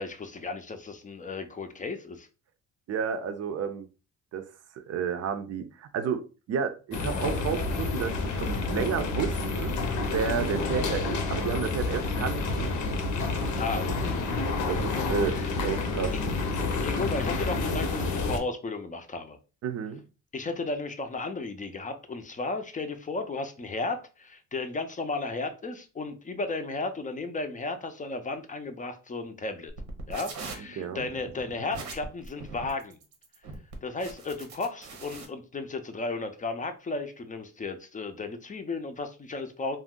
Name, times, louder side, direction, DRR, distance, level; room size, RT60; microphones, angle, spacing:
voice 1, 0.0-2.3 13.6-14.4 14.9-15.5 16.8-19.4 20.3-29.7 30.1-33.0 33.8-39.8, left 3 dB, 25° left, 0.5 m, -34 dB
voice 2, 2.9-3.9 4.3-4.5 4.7-12.8 14.0-14.1 14.7-16.2 19.6-20.0 30.6-31.1, right 7 dB, 55° right, 0.5 m, -31 dB
sound 1, 6.9-18.4, left 3 dB, 75° left, 0.7 m, -29 dB
sound 2, 29.7-35.2, right 3 dB, 80° right, 0.9 m, -42 dB
2.5 x 2.1 x 3.6 m
cardioid pair, 90°, 30 cm